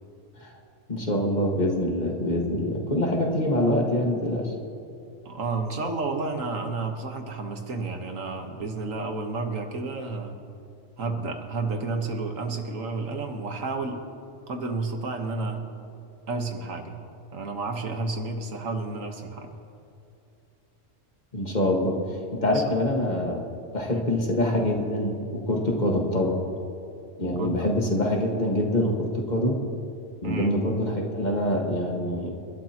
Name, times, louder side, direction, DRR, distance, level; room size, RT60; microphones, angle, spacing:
voice 1, 0.9-4.5 21.3-23.4 23.7-26.4 27.2-29.6 30.2-32.3, left 1 dB, 35° left, -1 dB, 1.9 m, -25 dB
voice 2, 5.3-10.4 11.0-14.0 14.5-15.7 16.3-17.0 17.3-19.6 22.4-22.6 23.9-24.0 27.4-27.7 30.2-30.6, right 3 dB, 85° right, 4 dB, 1.7 m, -31 dB
29.0 x 12.0 x 3.0 m, 2.7 s
omnidirectional pair, 1.3 m